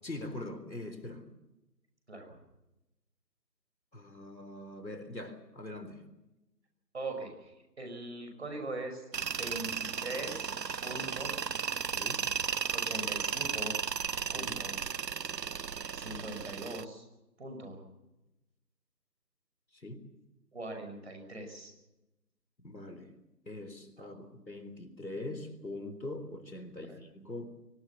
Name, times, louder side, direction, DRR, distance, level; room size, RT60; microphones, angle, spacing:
voice 1, 0.0-1.3 3.9-6.0 11.8-12.2 14.2-14.5 19.7-20.0 22.6-23.1 23.5-27.6, left 2 dB, 90° left, 8 dB, 3.9 m, -42 dB
voice 2, 6.9-10.5 10.8-11.3 12.7-13.8 14.3-14.8 16.0-17.1 17.4-17.8 20.5-21.7 24.0-24.2 26.9-27.0, right 2 dB, 40° right, 4 dB, 5.8 m, -41 dB
Tools, 9.1-16.8, right 6 dB, 75° right, 0.7 m, -35 dB
24.5 x 18.5 x 7.2 m, 0.97 s
figure-of-eight pair, 165°, 50 cm